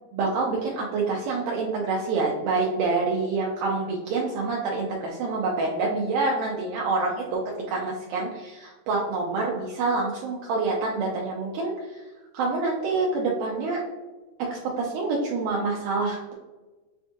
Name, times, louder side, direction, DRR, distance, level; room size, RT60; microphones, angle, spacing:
voice 1, 0.1-7.4 7.7-12.1 12.3-13.8 14.5-16.4, right 3 dB, 80° right, -2 dB, 2.0 m, -27 dB
7.0 x 2.4 x 2.6 m, 1.2 s
omnidirectional pair, 4.0 m